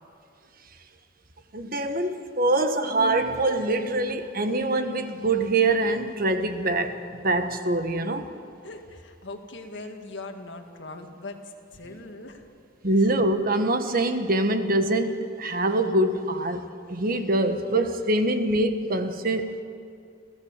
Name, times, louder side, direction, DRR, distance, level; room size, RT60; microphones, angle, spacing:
voice 1, 1.5-8.3 12.8-19.6, right 2 dB, 45° right, 1.3 m, -24 dB
voice 2, 8.6-12.7, left 2 dB, 65° left, 2.1 m, -41 dB
30.0 x 15.0 x 7.4 m
head